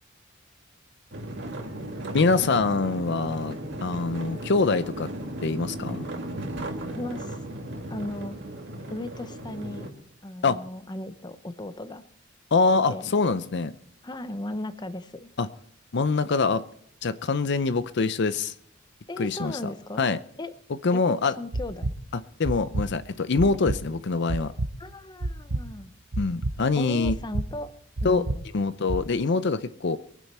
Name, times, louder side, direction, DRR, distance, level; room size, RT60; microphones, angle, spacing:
sound 1, 1.1-9.9, right 1 dB, 60° right, 2.1 m, -36 dB
voice 1, 2.1-5.1 5.4-6.1 10.4-10.6 12.5-13.7 15.4-15.5 15.9-16.6 17.0-18.5 19.2-19.6 20.0-20.2 20.8-21.3 22.4-24.5 26.2-27.2 28.0-28.2 28.5-30.0, left 4 dB, 60° left, 0.6 m, -24 dB
voice 2, 6.9-7.4 7.9-8.4 8.9-9.9 10.2-12.0 12.9-13.1 14.0-15.3 19.1-20.1 20.4-20.5 20.9-21.9 24.8-25.9 26.8-27.7 28.0-28.3, left 1 dB, 20° left, 0.8 m, -36 dB
sound 2, 21.5-21.9 22.4-22.9 23.4-23.8 24.3-24.7 25.2-25.6 26.1-26.5 27.0-27.5 28.0-28.4 28.9-29.1, right 2 dB, 85° right, 0.9 m, -28 dB
23.0 x 9.3 x 4.3 m
head